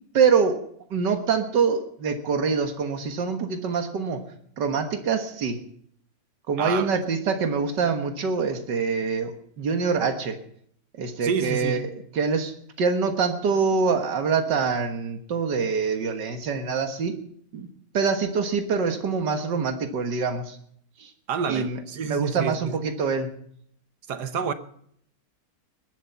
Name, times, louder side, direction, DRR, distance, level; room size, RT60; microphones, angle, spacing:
voice 1, 0.1-0.6 0.9-4.2 4.6-5.6 6.5-10.4 11.0-11.9 12.2-17.2 17.5-17.7 17.9-20.6 21.0-21.1 21.5-21.8 22.1-23.3, right 5 dB, 90° right, 2.1 m, -25 dB
voice 2, 6.6-6.9 11.2-11.9 21.3-22.8 24.1-24.5, right 6 dB, 75° right, 1.7 m, -29 dB
20.0 x 11.5 x 5.7 m
omnidirectional pair, 1.8 m